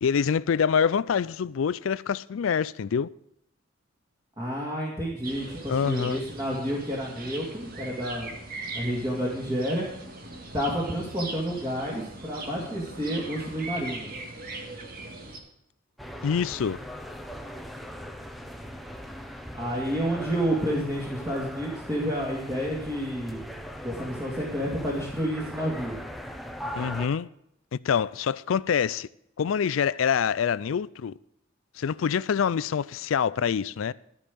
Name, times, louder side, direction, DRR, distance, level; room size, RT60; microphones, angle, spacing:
voice 1, 0.0-3.1 5.7-6.2 16.2-16.8 26.8-27.3 27.8-29.1 29.4-31.1 31.8-33.9, left 7 dB, 80° left, 0.4 m, -25 dB
voice 2, 4.4-8.3 8.7-9.9 10.5-14.1 19.5-23.4 23.8-26.0, equal, 20° right, 2.3 m, -30 dB
sound 1, 5.2-15.4, right 3 dB, 50° right, 1.8 m, -40 dB
sound 2, 16.0-27.1, equal, ahead, 0.8 m, -40 dB
13.0 x 5.5 x 8.3 m
head